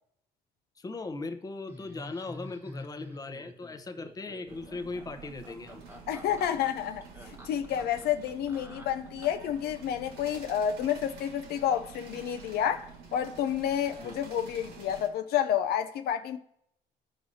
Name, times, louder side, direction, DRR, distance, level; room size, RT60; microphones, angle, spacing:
voice 1, 0.8-5.8 14.0-14.2, left 3 dB, 20° left, 0.7 m, -39 dB
Laughter, 1.7-9.5, left 1 dB, 10° right, 1.2 m, -48 dB
sound 1, 4.5-15.1, right 5 dB, 80° right, 1.8 m, -48 dB
voice 2, 6.1-16.4, left 9 dB, 70° left, 0.5 m, -30 dB
14.0 x 4.7 x 2.7 m
cardioid pair, 110°, 17 cm